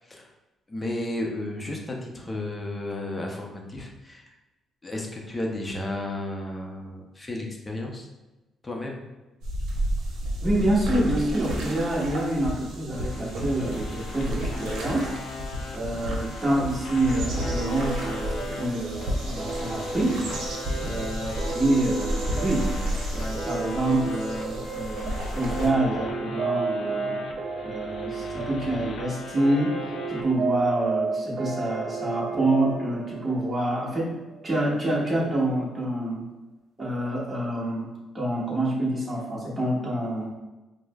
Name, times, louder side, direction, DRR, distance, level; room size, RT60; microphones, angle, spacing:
voice 1, 0.7-4.3 4.8-8.1 8.6-9.0 15.9-16.2 20.7-20.9, left 1 dB, 20° left, 1 dB, 0.6 m, -33 dB
sound 1, 9.4-25.7, equal, 85° right, 0.7 m, -32 dB
voice 2, 10.4-15.1 15.7-20.2 20.8-22.7 23.1-27.2 27.6-29.7 30.1-34.1 34.4-36.2 36.8-37.9 38.1-40.3, right 1 dB, 25° right, -6 dB, 1.3 m, -27 dB
sound 2, 12.9-30.3, left 4 dB, 60° left, 0.4 m, -40 dB
sound 3, 17.4-34.5, right 4 dB, 60° right, 0.4 m, -33 dB
4.8 x 2.1 x 2.3 m, 1.1 s
cardioid pair, 90°, 0 cm